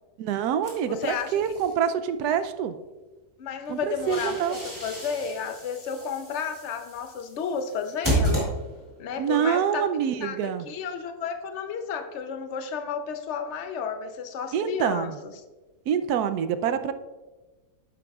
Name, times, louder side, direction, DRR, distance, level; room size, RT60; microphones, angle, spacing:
voice 1, 0.2-2.8 3.7-4.6 9.2-10.7 14.5-15.2 15.9-16.9, right 8 dB, 75° right, 11 dB, 1.1 m, -26 dB
sound 1, 0.6-1.7 3.7-9.0, right 1 dB, 10° right, 2.6 m, -32 dB
voice 2, 0.9-1.3 3.4-8.5 9.0-9.9 10.2-10.4 10.7-15.1, left 6 dB, 55° left, 7 dB, 0.9 m, -32 dB
11.0 x 8.6 x 2.4 m, 1.2 s
omnidirectional pair, 1.7 m